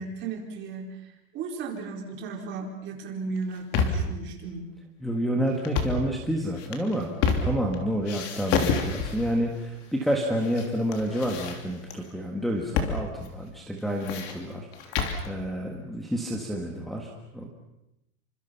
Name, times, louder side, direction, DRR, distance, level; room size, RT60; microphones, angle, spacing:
voice 1, 0.0-4.6, right 4 dB, 30° right, 1 dB, 4.6 m, -35 dB
sound 1, 3.4-4.2 5.6-6.1 6.6-7.8 8.1-9.4 10.1-10.7 10.9-12.0 12.8-13.0 13.2-13.3 13.8-15.3, left 5 dB, 35° left, 3.1 m, -28 dB
voice 2, 5.0-17.5, equal, ahead, -1 dB, 1.6 m, -29 dB
29.0 x 25.5 x 5.9 m, 0.89 s
supercardioid pair, 165°, 41 cm